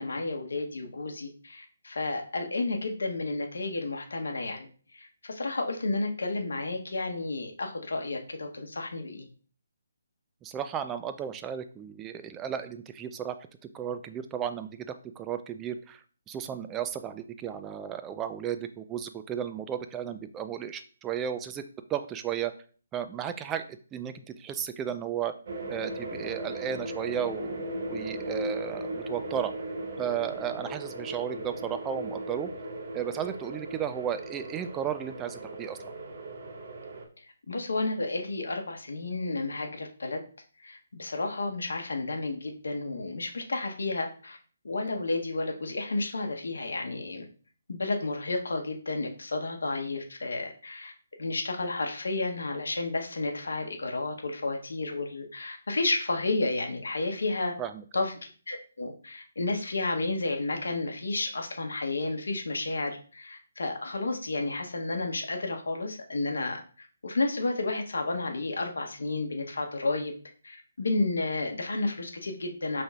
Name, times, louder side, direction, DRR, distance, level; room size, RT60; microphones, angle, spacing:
voice 1, 0.0-4.7 4.9-9.3 37.5-40.2 40.6-44.4 44.6-47.2 47.7-50.9 51.2-57.5 57.9-58.1 58.5-70.1 70.4-72.8, left 2 dB, 70° left, 3 dB, 0.8 m, -31 dB
voice 2, 10.4-13.3 13.7-16.0 16.3-21.6 21.9-22.5 22.9-25.3 25.7-29.5 30.0-32.5 32.9-35.8 57.6-57.8, right 9 dB, 15° right, 10 dB, 0.3 m, -34 dB
sound 1, 25.5-37.1, right 1 dB, 50° right, 0.9 m, -37 dB
5.3 x 3.4 x 2.3 m, 0.41 s
figure-of-eight pair, 140°, 0 cm